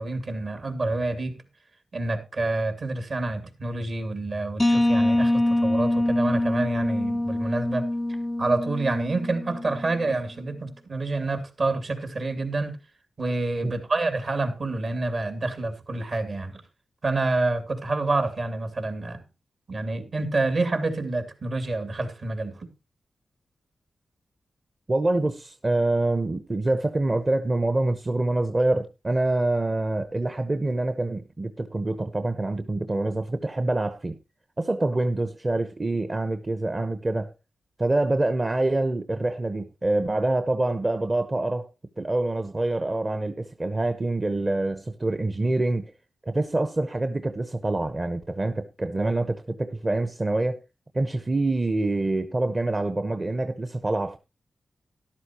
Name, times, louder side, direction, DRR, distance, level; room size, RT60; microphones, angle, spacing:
voice 1, 0.0-1.4 1.9-7.8 8.4-12.8 13.2-16.6 17.0-19.2 19.7-22.6, right 2 dB, 60° right, 2.7 m, -28 dB
sound 1, 4.6-10.2, left 1 dB, 20° left, 0.5 m, -25 dB
voice 2, 24.9-34.2 34.6-37.3 37.8-41.7 42.0-45.9 46.3-50.6 50.9-54.2, right 2 dB, 30° right, 0.9 m, -26 dB
13.0 x 11.5 x 2.9 m
cardioid pair, 65°, 0 cm